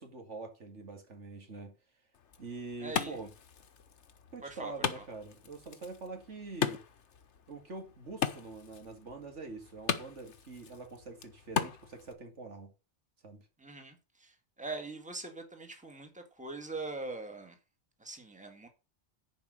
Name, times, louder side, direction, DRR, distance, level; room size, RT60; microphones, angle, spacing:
voice 1, 0.0-1.7 2.4-3.3 4.3-6.8 7.5-12.7 13.2-13.4, right 3 dB, 75° right, 2.5 m, -45 dB
Wood, 2.1-12.1, left 7 dB, 75° left, 1.3 m, -39 dB
voice 2, 2.8-3.2 4.4-5.0 13.6-14.3 14.6-17.5 18.0-18.7, right 3 dB, 5° right, 1.8 m, -42 dB
10.5 x 5.2 x 6.5 m
omnidirectional pair, 1.2 m